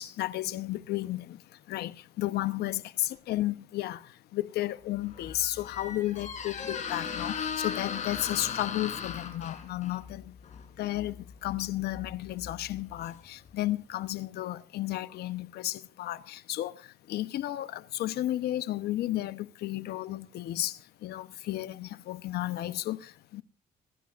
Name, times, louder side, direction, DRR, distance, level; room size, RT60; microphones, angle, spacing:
voice 1, 0.0-1.4 1.7-10.3 10.8-11.2 11.4-16.8 17.1-23.4, left 15 dB, 70° left, 1.0 m, -33 dB
Squeak, 4.9-13.7, left 6 dB, 45° left, 3.9 m, -38 dB
26.5 x 11.5 x 2.5 m
cardioid pair, 110°, 17 cm